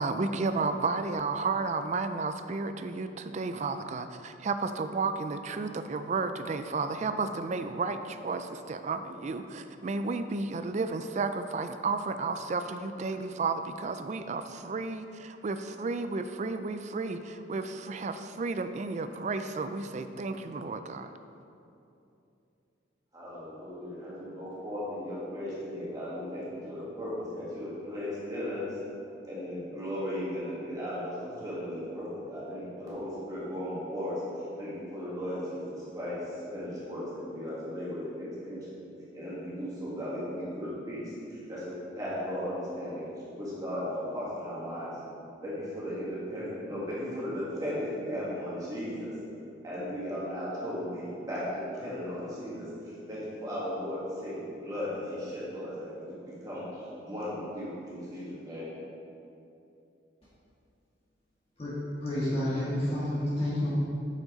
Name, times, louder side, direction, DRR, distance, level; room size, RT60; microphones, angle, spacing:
voice 1, 0.0-21.1, right 3 dB, 40° right, 9 dB, 0.3 m, -32 dB
voice 2, 23.1-28.8 29.2-38.8 39.1-43.0 43.4-44.9 45.4-49.1 49.6-58.7, equal, 20° right, -9 dB, 1.9 m, -36 dB
voice 3, 62.0-63.7, left 1 dB, 30° left, -9 dB, 1.6 m, -29 dB
7.7 x 7.3 x 3.9 m, 2.8 s
head